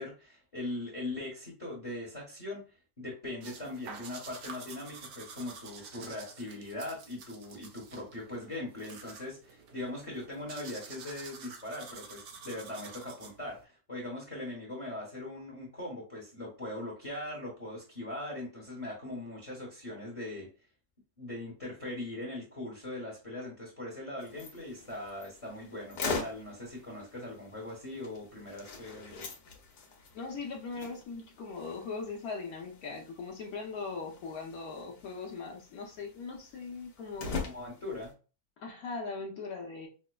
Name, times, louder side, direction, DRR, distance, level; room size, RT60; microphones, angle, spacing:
voice 1, 0.0-20.5 21.2-29.3 37.4-38.1, left 1 dB, 25° left, -2 dB, 1.0 m, -40 dB
sound 1, 3.4-13.6, right 5 dB, 80° right, 1.3 m, -49 dB
sound 2, 24.2-38.1, left 4 dB, 80° left, 1.4 m, -43 dB
voice 2, 30.1-37.3 38.6-39.9, left 4 dB, 65° left, 1 dB, 1.2 m, -40 dB
5.6 x 2.0 x 2.2 m, 0.35 s
omnidirectional pair, 1.8 m